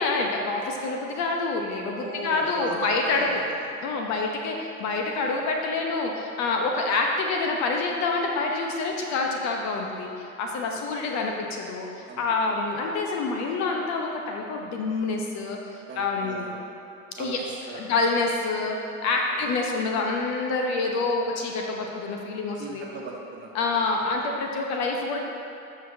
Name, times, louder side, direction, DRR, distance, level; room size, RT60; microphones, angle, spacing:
voice 1, 0.0-3.4 3.8-15.6 16.0-16.4 17.2-17.4 17.7-18.8 19.0-22.9 23.5-25.2, left 3 dB, 40° left, 1 dB, 0.9 m, -27 dB
voice 2, 1.9-3.7 10.6-10.9 12.1-12.6 15.9-16.7 17.2-17.8 19.3-19.5 22.6-23.7, right 2 dB, 25° right, -2 dB, 1.4 m, -39 dB
12.5 x 5.9 x 2.8 m, 2.9 s
figure-of-eight pair, 80°, 42 cm